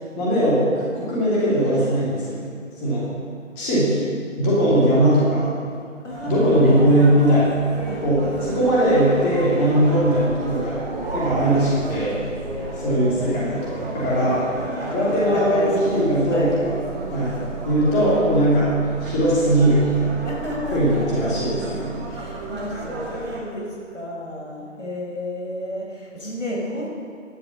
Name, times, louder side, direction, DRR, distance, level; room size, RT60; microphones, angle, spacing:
voice 1, 0.1-2.5 2.8-3.1 3.6-4.1 4.4-5.5 6.3-7.6 8.0-10.8 11.1-12.2 12.8-14.4 14.9-16.8 17.1-17.4 17.6-18.7 19.0-20.1 20.7-21.9, right 1 dB, 10° left, -7 dB, 2.7 m, -19 dB
voice 2, 6.0-6.9 7.8-8.7 12.4-13.5 14.1-16.6 17.6-18.0 20.2-21.3 22.0-26.9, left 1 dB, 70° left, -3 dB, 4.7 m, -32 dB
sound 1, 6.1-23.4, right 2 dB, 15° right, 2.0 m, -33 dB
sound 2, 10.4-12.9, right 3 dB, 45° right, 1.0 m, -34 dB
15.5 x 11.5 x 6.3 m, 2.2 s
figure-of-eight pair, 155°, 39 cm